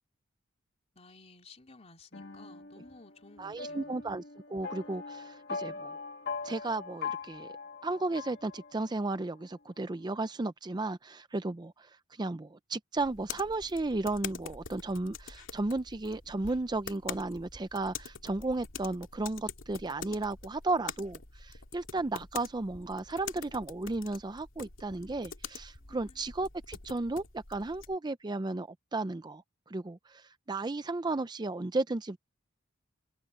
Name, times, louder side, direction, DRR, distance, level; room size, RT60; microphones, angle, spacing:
voice 1, 0.9-4.0 25.8-26.2, left 3 dB, 30° left, 3.3 m, -55 dB
sound 1, 2.1-9.1, left 5 dB, 55° left, 1.9 m, -41 dB
voice 2, 3.4-4.2 4.5-6.0 6.4-7.5 7.8-29.4 29.7-32.2, right 2 dB, 20° right, 0.5 m, -34 dB
sound 2, 13.0-28.0, left 6 dB, 70° left, 2.3 m, -45 dB
head